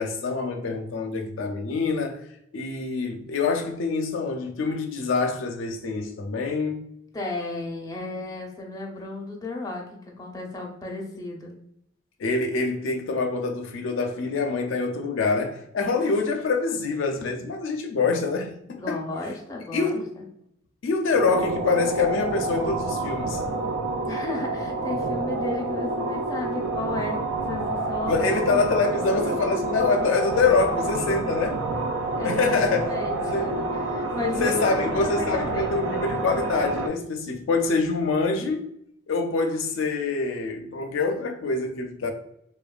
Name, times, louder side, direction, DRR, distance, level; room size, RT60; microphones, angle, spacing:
voice 1, 0.0-2.2 2.5-6.8 12.2-19.0 19.7-20.1 20.8-23.4 28.1-31.6 32.2-32.9 33.3-33.5 34.4-38.6 39.1-42.1, left 4 dB, 85° left, 0.4 m, -25 dB
voice 2, 7.1-9.8 10.2-11.5 18.8-20.2 24.1-27.2 27.5-28.7 28.9-29.1 32.2-35.7, left 2 dB, 20° left, 0.5 m, -33 dB
sound 1, 21.1-36.9, right 2 dB, 80° right, 0.4 m, -28 dB
3.0 x 2.2 x 2.3 m
head